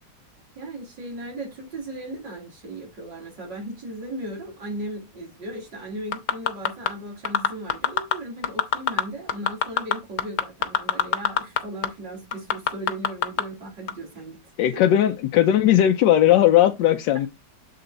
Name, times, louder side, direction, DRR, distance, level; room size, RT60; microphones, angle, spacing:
voice 1, 0.6-14.4, right 1 dB, 80° right, 3.9 m, -37 dB
sound 1, 6.1-6.9 7.2-8.1 8.4-9.0 9.3-11.6 11.8-11.9 12.3-13.4 13.9-14.0, left 8 dB, 65° left, 1.4 m, -21 dB
voice 2, 14.6-17.3, left 11 dB, 80° left, 1.3 m, -18 dB
7.9 x 3.8 x 4.0 m
omnidirectional pair, 1.9 m